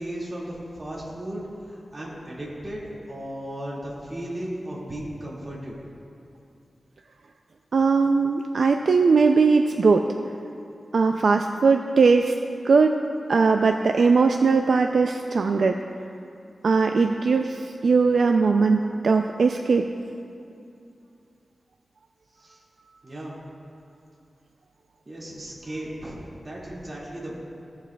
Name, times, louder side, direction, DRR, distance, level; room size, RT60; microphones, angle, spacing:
voice 1, 0.0-5.8 22.3-22.6 23.0-23.4 25.1-27.4, right 1 dB, 30° right, -5 dB, 2.0 m, -35 dB
voice 2, 7.7-10.1 10.9-12.3 12.6-13.0 13.3-15.8 16.6-19.8, right 4 dB, 70° right, 4 dB, 0.3 m, -20 dB
16.5 x 7.5 x 2.3 m, 2.5 s
wide cardioid pair, 125°, 0 cm